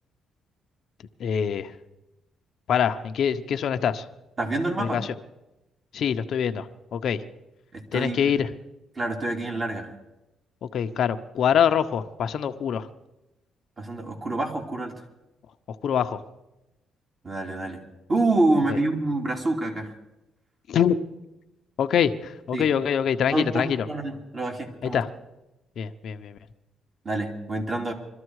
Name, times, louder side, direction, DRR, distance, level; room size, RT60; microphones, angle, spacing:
voice 1, 1.2-1.7 2.7-4.0 4.8-5.1 5.9-7.2 7.9-8.5 10.7-12.9 15.8-16.2 18.7-18.8 20.7-21.0 21.8-23.9 24.9-25.1 25.8-26.4, left 8 dB, 65° left, 8 dB, 0.8 m, -24 dB
voice 2, 4.4-5.0 7.7-8.2 8.9-9.9 13.8-14.9 17.2-17.8 18.1-19.9 22.5-22.7 23.3-25.0 27.0-27.9, right 2 dB, 35° right, 2 dB, 3.1 m, -27 dB
22.5 x 13.0 x 4.8 m, 0.96 s
cardioid pair, 90°, 0 cm